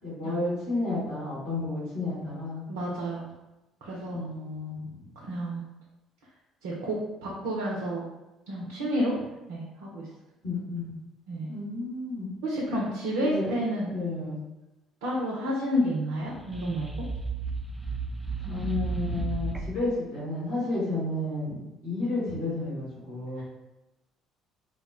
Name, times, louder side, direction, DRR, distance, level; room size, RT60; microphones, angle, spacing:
voice 1, 0.0-2.6 4.1-5.1 10.4-10.9 11.5-12.3 13.2-13.5 13.9-14.4 18.5-21.6 21.8-23.4, left 2 dB, 75° left, -10 dB, 1.2 m, -31 dB
voice 2, 2.7-3.2 3.8-4.3 5.2-5.6 6.6-8.1 8.5-9.2 9.5-10.1 11.3-11.5 12.4-13.9 15.0-16.9 23.4-23.5, equal, 75° right, -4 dB, 0.5 m, -30 dB
sound 1, 16.3-19.9, right 4 dB, 15° right, 0.4 m, -33 dB
2.3 x 2.1 x 3.5 m, 0.99 s
hypercardioid pair, 55°, 0 cm